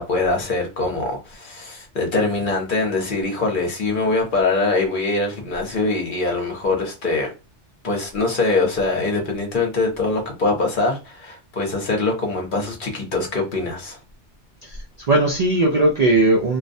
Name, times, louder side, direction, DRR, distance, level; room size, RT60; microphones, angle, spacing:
voice 1, 0.0-7.3 7.8-14.0, left 3 dB, 50° left, 0.9 m, -23 dB
voice 2, 14.6-16.6, right 2 dB, 55° right, 0.4 m, -18 dB
2.3 x 2.1 x 2.6 m
omnidirectional pair, 1.2 m